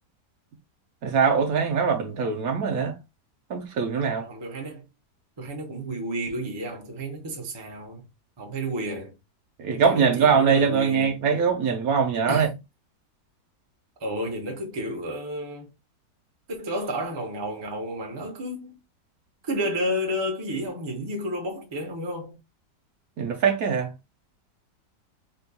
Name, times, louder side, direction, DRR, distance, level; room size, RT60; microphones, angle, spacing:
voice 1, 1.0-2.9 3.5-4.3 9.6-12.5 23.2-23.9, right 6 dB, 70° right, 0.9 m, -22 dB
voice 2, 4.2-4.9 5.4-8.1 8.4-9.1 9.7-11.2 12.3-12.5 14.0-15.7 16.5-18.8 19.4-22.4, equal, 30° right, 0.5 m, -31 dB
4.3 x 2.2 x 2.8 m
omnidirectional pair, 1.9 m